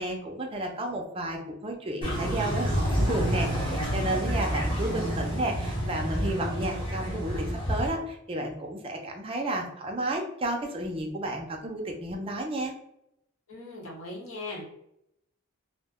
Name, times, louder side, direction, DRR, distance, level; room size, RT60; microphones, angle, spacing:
voice 1, 0.0-12.7, right 1 dB, 25° right, 2 dB, 0.4 m, -32 dB
sound 1, 2.0-7.9, equal, 25° left, 0.9 m, -29 dB
voice 2, 13.5-14.6, left 2 dB, 75° left, -4 dB, 1.0 m, -39 dB
2.1 x 2.1 x 3.5 m, 0.79 s
head